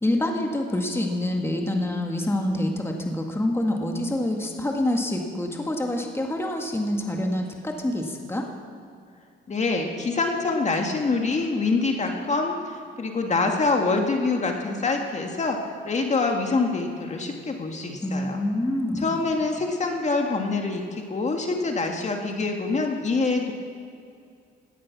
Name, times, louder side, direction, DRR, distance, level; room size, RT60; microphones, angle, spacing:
voice 1, 0.0-8.5 18.0-19.1, left 1 dB, 10° left, 2 dB, 1.9 m, -26 dB
voice 2, 9.5-18.4 19.0-23.5, left 3 dB, 35° left, 2 dB, 2.0 m, -25 dB
17.5 x 12.5 x 6.1 m, 2.3 s
cardioid pair, 90°, 20 cm